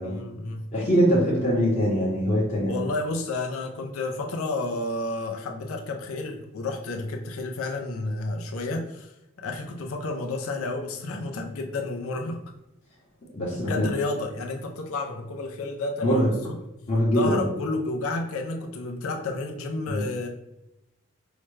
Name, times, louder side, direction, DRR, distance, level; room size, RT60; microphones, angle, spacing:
voice 1, 0.0-0.7 2.6-12.4 13.5-16.6 17.1-20.3, left 2 dB, 75° left, 2 dB, 0.5 m, -31 dB
voice 2, 0.7-2.7 13.3-13.9 16.0-16.3 16.9-17.4 19.9-20.0, equal, 30° left, -7 dB, 0.8 m, -22 dB
4.7 x 2.2 x 3.1 m, 0.92 s
head